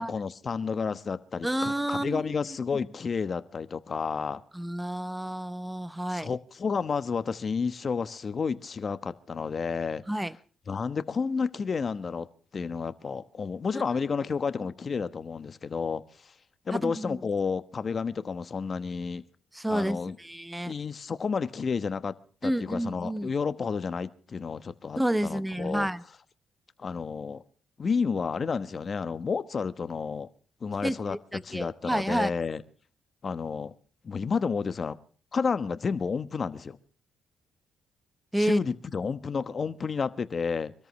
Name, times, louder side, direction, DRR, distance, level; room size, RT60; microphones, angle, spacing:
voice 1, 0.0-4.4 6.1-10.0 10.7-12.3 12.5-16.3 16.6-19.2 19.7-20.2 20.6-22.1 22.4-25.9 26.8-27.4 27.8-30.3 30.6-31.2 31.4-32.6 33.2-33.7 34.0-35.0 35.3-36.8 38.4-40.7, left 5 dB, 40° left, 12 dB, 1.1 m, -31 dB
voice 2, 1.4-2.2 4.5-6.3 10.1-10.3 16.7-17.2 19.5-20.7 22.4-23.3 25.0-26.0 30.8-32.3 38.3-38.6, right 1 dB, 5° right, 16 dB, 0.8 m, -30 dB
25.5 x 13.5 x 3.2 m, 0.41 s
cardioid pair, 90°, 0 cm